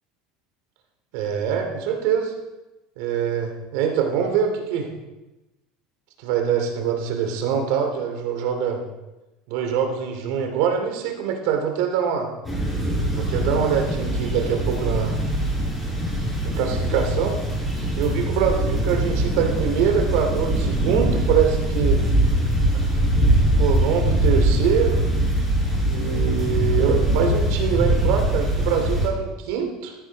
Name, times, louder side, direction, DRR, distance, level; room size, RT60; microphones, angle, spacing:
voice 1, 1.1-2.3 3.0-4.9 6.2-8.8 9.5-12.3 13.1-15.2 16.5-17.4 18.0-22.0 22.7-22.8 23.6-25.0 25.9-29.9, right 7 dB, 75° right, 3 dB, 2.6 m, -24 dB
sound 1, 12.4-29.1, right 1 dB, 10° left, 5.3 m, -22 dB
13.5 x 11.0 x 4.0 m, 1.0 s
supercardioid pair, 135°, 0 cm